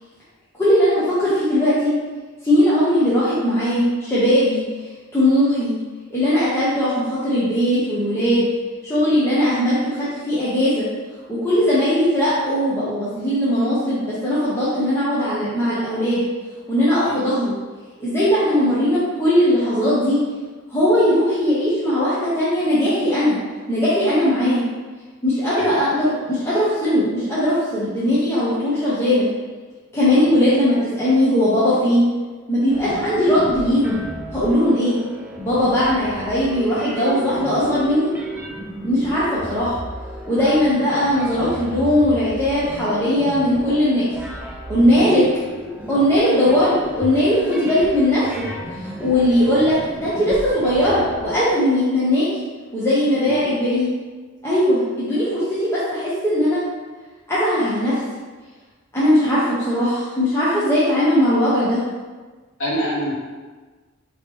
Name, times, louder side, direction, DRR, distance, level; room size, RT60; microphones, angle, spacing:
voice 1, 0.6-1.9 2.4-4.6 5.1-5.7 6.1-6.9 7.2-8.5 8.8-10.9 11.3-16.2 16.7-17.5 18.0-20.2 20.7-23.4 23.7-24.6 25.2-29.3 29.9-32.0 32.5-34.0 34.3-35.0 35.4-38.1 38.8-39.8 40.3-44.0 44.7-45.2 45.9-48.2 48.8-52.3 52.7-53.9 54.4-56.6 57.3-57.9 58.9-61.8, equal, 15° left, -11 dB, 0.8 m, -19 dB
sound 1, 32.7-51.3, right 1 dB, 10° right, 0.5 m, -34 dB
voice 2, 62.6-63.1, equal, 85° left, -7 dB, 1.3 m, -27 dB
4.9 x 3.0 x 3.4 m, 1.3 s
head